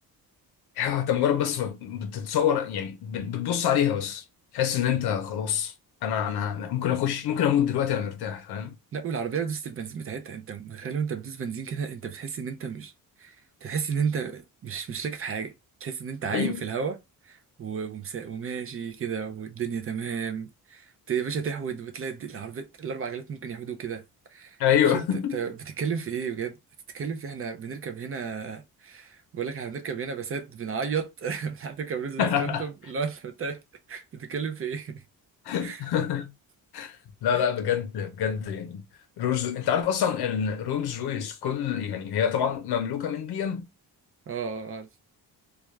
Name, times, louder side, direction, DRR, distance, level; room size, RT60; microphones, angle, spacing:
voice 1, 0.8-4.2 4.5-5.7 6.0-8.8 16.3-16.7 24.6-25.4 32.2-32.7 35.4-36.3 36.7-37.0 37.2-38.8 39.2-43.6, left 9 dB, 85° left, 0.7 m, -26 dB
voice 2, 8.9-12.9 13.2-13.4 13.6-15.5 15.8-17.0 17.2-24.0 24.3-25.1 25.3-26.5 26.9-33.6 33.9-35.0 35.6-35.8 37.3-37.5 44.3-45.0, right 6 dB, 40° right, 0.4 m, -33 dB
2.3 x 2.3 x 3.0 m
wide cardioid pair, 165°, 38 cm